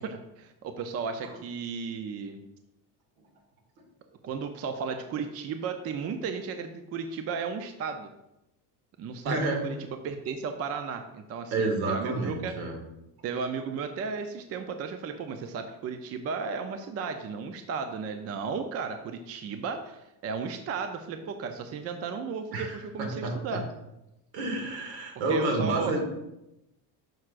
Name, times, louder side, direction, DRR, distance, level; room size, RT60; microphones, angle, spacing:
voice 1, 0.0-2.4 4.2-8.1 9.0-9.8 10.0-12.5 13.2-23.6 25.3-26.0, right 5 dB, 35° right, 7 dB, 0.5 m, -34 dB
voice 2, 9.2-9.7 11.5-12.8 22.5-23.6 24.3-26.0, right 2 dB, 75° right, 2 dB, 2.1 m, -29 dB
9.2 x 6.1 x 2.5 m, 0.90 s
cardioid pair, 140°, 44 cm